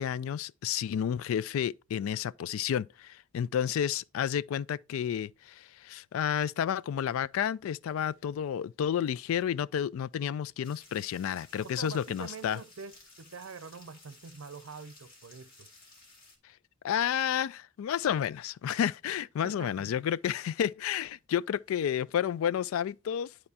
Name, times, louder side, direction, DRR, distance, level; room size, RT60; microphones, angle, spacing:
voice 1, 0.0-12.6 16.8-23.3, left 9 dB, 80° left, 0.3 m, -31 dB
sound 1, 10.6-16.4, left 2 dB, 45° left, 2.1 m, -56 dB
voice 2, 11.6-15.7 19.4-19.9, right 5 dB, 85° right, 0.6 m, -45 dB
10.5 x 4.4 x 2.8 m
head